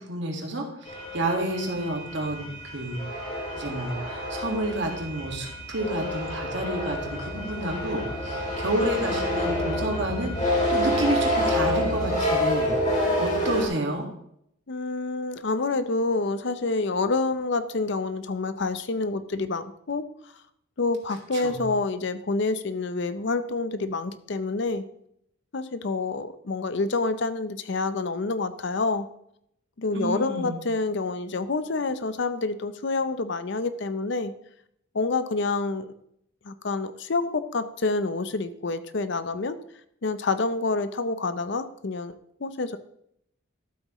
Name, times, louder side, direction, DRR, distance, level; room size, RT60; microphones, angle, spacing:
voice 1, 0.0-3.0 3.6-12.7 13.2-14.1 21.3-21.7 29.9-30.6, right 1 dB, 60° right, 2 dB, 1.9 m, -30 dB
sound 1, 0.9-13.7, equal, 35° left, 2.8 m, -28 dB
voice 2, 14.7-20.1 20.8-24.8 25.5-29.1 29.8-34.3 34.9-35.9 36.4-39.6 40.0-42.1 42.4-42.8, left 3 dB, 55° left, 12 dB, 0.6 m, -27 dB
12.5 x 7.8 x 3.1 m, 0.72 s
head